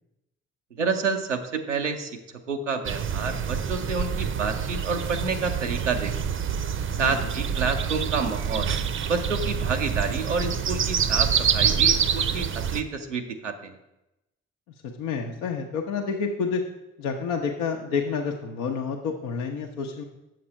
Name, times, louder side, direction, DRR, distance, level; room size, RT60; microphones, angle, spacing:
voice 1, 0.7-2.2 2.5-6.1 7.0-8.7 9.1-13.8, right 4 dB, 90° right, 4 dB, 0.6 m, -29 dB
sound 1, 2.8-12.8, right 7 dB, 35° right, 0.6 m, -26 dB
voice 2, 15.0-16.6 17.0-20.0, left 5 dB, 65° left, 1 dB, 0.8 m, -29 dB
7.5 x 5.9 x 5.5 m, 0.92 s
figure-of-eight pair, 40°, 35 cm